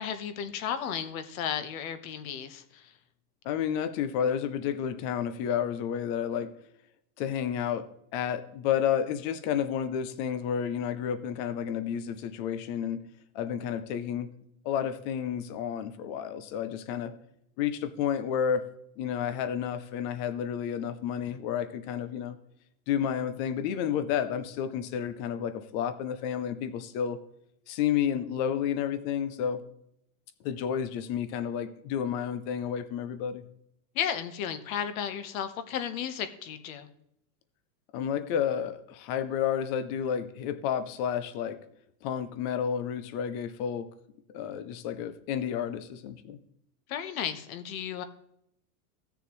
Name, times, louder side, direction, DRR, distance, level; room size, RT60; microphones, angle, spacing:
voice 1, 0.0-2.9 33.9-36.9 46.9-48.0, left 8 dB, 60° left, 10 dB, 1.2 m, -34 dB
voice 2, 3.5-6.5 7.2-13.0 13.3-14.3 14.6-17.1 17.6-18.6 19.0-22.4 22.9-27.2 27.7-29.6 30.4-33.4 37.9-41.6 42.0-43.9 44.3-46.4, left 8 dB, 25° left, 12 dB, 0.4 m, -31 dB
16.0 x 6.8 x 3.1 m, 0.76 s
supercardioid pair, 150°, 47 cm